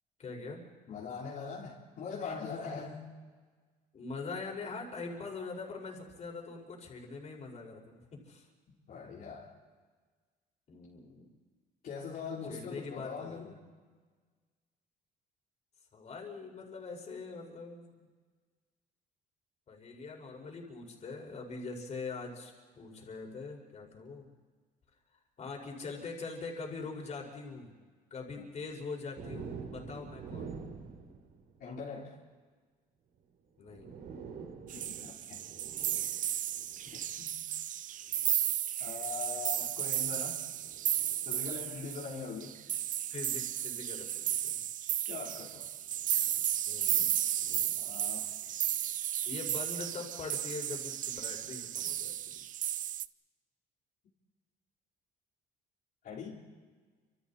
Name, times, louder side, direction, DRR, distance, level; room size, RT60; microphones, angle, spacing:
voice 1, 0.2-0.6 3.9-8.5 10.7-11.2 12.5-13.6 15.9-18.1 19.7-24.3 25.4-27.8 28.1-30.7 33.6-33.9 37.1-37.2 43.1-44.6 46.7-47.2 49.2-52.4, left 4 dB, 40° left, 1 dB, 5.4 m, -43 dB
voice 2, 0.9-3.0 8.9-9.5 11.8-13.6 28.4-28.5 31.6-32.2 34.7-35.4 37.2-37.3 38.8-40.4 41.3-42.5 45.1-45.7 47.8-48.3 56.0-56.4, left 5 dB, 60° left, -5 dB, 3.9 m, -41 dB
sound 1, 29.2-31.9 33.2-33.3 33.6-37.2 38.1-38.3 39.5-42.4 43.9-44.1 45.8-46.5 47.3-48.8, right 5 dB, 70° right, 3.6 m, -48 dB
sound 2, 34.7-53.1, right 11 dB, 50° right, 0.5 m, -34 dB
30.0 x 26.5 x 4.3 m, 1.5 s
cardioid pair, 110°, 17 cm